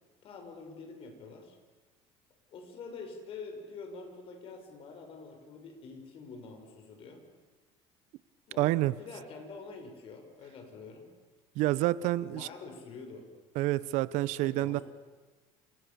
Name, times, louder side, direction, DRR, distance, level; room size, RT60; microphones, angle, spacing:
voice 1, 0.2-1.6 2.5-7.3 8.5-11.1 12.2-13.3 14.4-14.8, left 4 dB, 45° left, 6.0 m, -46 dB
voice 2, 8.6-8.9 11.6-12.5 13.5-14.8, right 16 dB, 70° right, 0.9 m, -28 dB
29.5 x 29.0 x 7.0 m
cardioid pair, 140°, 13 cm